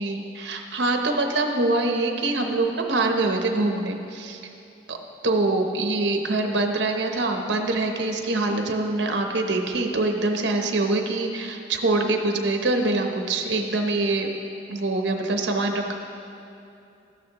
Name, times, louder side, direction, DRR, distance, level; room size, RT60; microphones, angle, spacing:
voice 1, 0.0-4.4 4.9-5.0 5.2-14.3 14.7-15.9, right 2 dB, 75° right, 3 dB, 0.9 m, -24 dB
13.0 x 10.5 x 3.0 m, 2.7 s
head